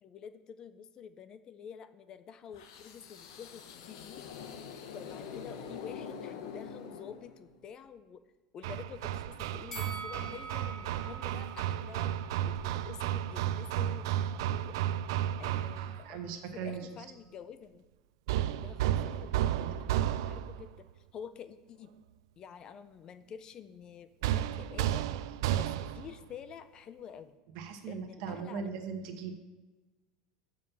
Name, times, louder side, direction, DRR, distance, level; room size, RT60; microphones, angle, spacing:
voice 1, 0.0-4.2 4.9-8.2 8.5-12.1 12.4-14.8 15.4-17.9 18.6-21.9 22.4-25.1 25.6-27.4 27.9-28.7, left 7 dB, 30° left, 12 dB, 0.4 m, -49 dB
sound 1, 2.5-7.6, left 6 dB, 80° left, 1.0 m, -45 dB
Hammer, 8.6-16.1 18.3-20.7 24.2-26.1, right 11 dB, 80° right, 0.3 m, -33 dB
Bell, 9.7-12.9 13.2-13.4, right 3 dB, 15° left, 1.3 m, -46 dB
voice 2, 16.0-16.8 19.6-19.9 27.5-29.4, right 6 dB, 60° right, 5 dB, 1.1 m, -39 dB
7.0 x 5.3 x 7.0 m, 1.2 s
supercardioid pair, 150°, 2 cm